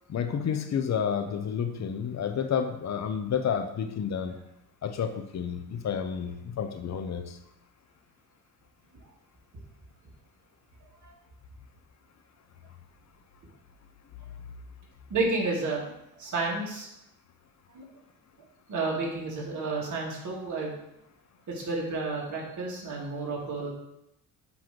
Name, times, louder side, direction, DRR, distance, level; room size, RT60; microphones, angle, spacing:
voice 1, 0.1-4.4 4.8-7.4, left 7 dB, 45° left, 8 dB, 0.9 m, -30 dB
voice 2, 15.1-15.9 16.2-16.9 17.7-17.8 18.7-20.7 21.5-23.7, right 3 dB, 50° right, -3 dB, 2.7 m, -31 dB
7.8 x 3.4 x 6.0 m, 0.83 s
cardioid pair, 95°, 38 cm